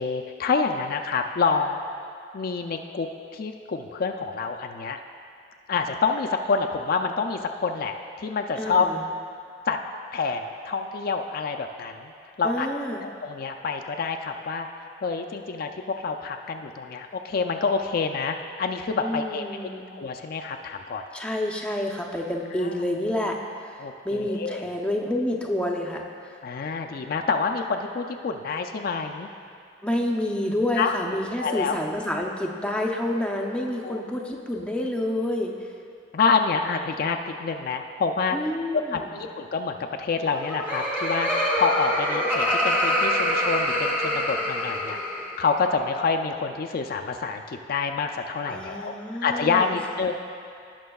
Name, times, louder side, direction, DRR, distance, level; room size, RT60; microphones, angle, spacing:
voice 1, 0.0-1.8 2.3-5.0 5.7-8.9 9.7-9.8 10.1-12.1 12.4-12.7 13.0-14.7 15.0-21.0 22.6-22.8 23.8-24.7 26.4-29.3 30.8-31.8 33.8-34.0 36.1-38.4 38.9-48.9 49.2-50.1, left 5 dB, 55° left, 4 dB, 0.4 m, -27 dB
voice 2, 8.6-9.0 12.4-13.0 19.0-19.9 21.1-23.4 23.6-26.3 29.8-35.5 38.3-39.1 48.5-50.1, left 1 dB, 5° left, 0 dB, 0.6 m, -28 dB
Laughter, 40.2-45.4, equal, 10° right, 1.3 m, -25 dB
17.5 x 6.0 x 2.3 m, 2.4 s
head